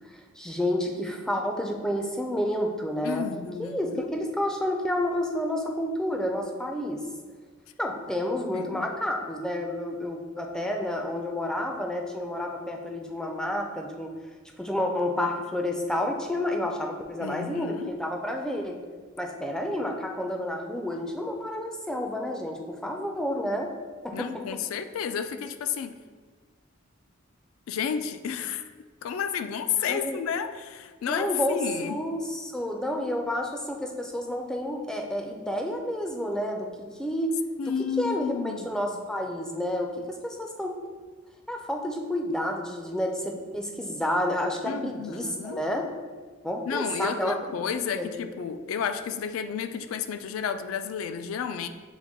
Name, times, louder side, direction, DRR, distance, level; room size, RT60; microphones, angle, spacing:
voice 1, 0.4-3.2 3.6-7.0 7.8-14.1 14.6-18.8 19.2-23.7 24.0-24.6 29.8-30.2 31.1-37.3 38.0-40.8 41.5-45.9 46.4-47.3 47.9-48.1, left 1 dB, 5° left, 2 dB, 0.3 m, -30 dB
voice 2, 3.0-4.1 8.5-8.9 17.2-18.0 24.1-26.0 27.7-28.7 29.0-32.0 37.6-38.9 44.7-45.6 46.7-51.7, left 7 dB, 80° left, 11 dB, 0.3 m, -31 dB
6.1 x 2.2 x 3.5 m, 1.5 s
head